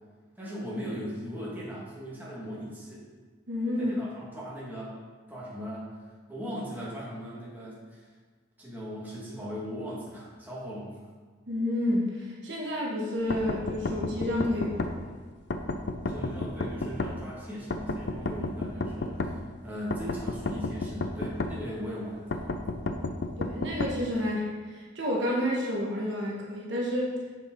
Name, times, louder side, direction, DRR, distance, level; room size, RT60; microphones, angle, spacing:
voice 1, 0.4-3.0 3.8-5.0 5.3-6.0 6.3-8.1 8.6-11.0 16.1-22.7, equal, 10° right, -7 dB, 1.9 m, -39 dB
voice 2, 3.5-4.0 11.5-15.1 23.4-27.1, left 1 dB, 65° right, -3 dB, 1.3 m, -30 dB
sound 1, 13.3-14.9 15.5-17.1 17.7-19.3 19.9-21.5 22.3-23.9, left 2 dB, 60° left, 0.5 m, -31 dB
7.2 x 5.2 x 4.6 m, 1.5 s
head